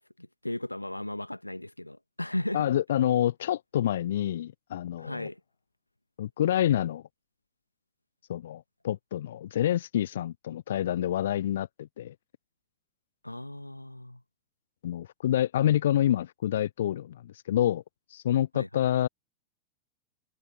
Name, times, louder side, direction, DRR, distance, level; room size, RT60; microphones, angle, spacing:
voice 1, 0.0-2.6 5.0-5.4 13.2-14.2 18.5-18.8, left 1 dB, 85° left, 1.3 m, -36 dB
voice 2, 2.5-5.3 6.2-7.0 8.3-12.1 14.8-17.8 18.1-19.1, left 11 dB, 60° left, 0.4 m, -27 dB
figure-of-eight pair, 90°, 0 cm